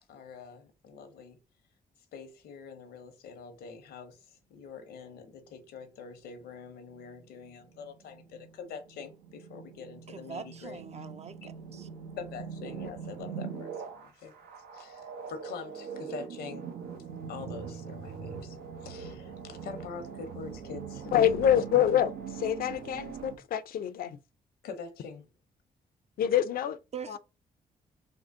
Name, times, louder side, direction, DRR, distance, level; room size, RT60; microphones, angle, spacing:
voice 1, 0.1-1.4 2.1-10.8 11.4-11.5 11.7-11.8 12.2-14.3 14.7-16.7 17.3-21.2 22.7-22.8 24.6-25.3, left 5 dB, 90° left, 0.8 m, -45 dB
sound 1, 6.9-23.4, right 6 dB, 85° right, 0.6 m, -42 dB
voice 2, 10.1-11.9 26.9-27.2, right 6 dB, 45° right, 0.5 m, -43 dB
voice 3, 21.1-24.2 26.2-26.8 27.1-27.2, left 10 dB, 70° left, 0.4 m, -26 dB
3.6 x 2.1 x 3.5 m
cardioid pair, 70°, 16 cm